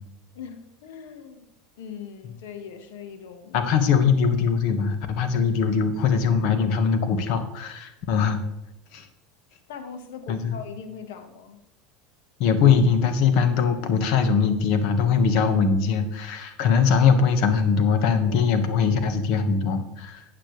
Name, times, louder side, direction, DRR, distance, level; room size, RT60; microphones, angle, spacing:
voice 1, 0.3-1.5 1.8-3.7 9.7-11.6, left 7 dB, 80° left, 7 dB, 1.4 m, -40 dB
voice 2, 3.5-8.4 8.9-9.0 10.3-10.6 12.4-20.2, left 6 dB, 65° left, 8 dB, 1.4 m, -21 dB
12.0 x 8.4 x 3.3 m, 0.88 s
supercardioid pair, 115°, 0 cm